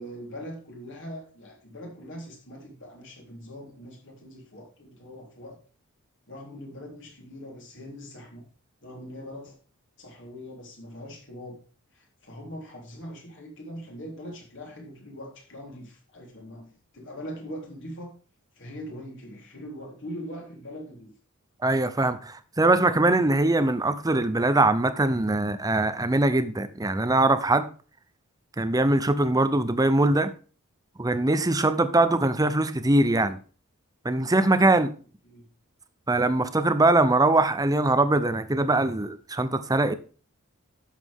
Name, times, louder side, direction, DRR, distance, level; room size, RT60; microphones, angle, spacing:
voice 1, 0.0-5.6 6.3-8.5 8.8-9.5 10.0-11.6 11.9-18.1 18.5-21.1 35.2-35.5, equal, 55° left, 3.8 m, -41 dB
voice 2, 21.6-27.7 28.6-30.3 31.0-33.4 34.0-34.9 36.1-39.9, right 2 dB, 15° right, 0.7 m, -22 dB
11.0 x 7.5 x 3.6 m
head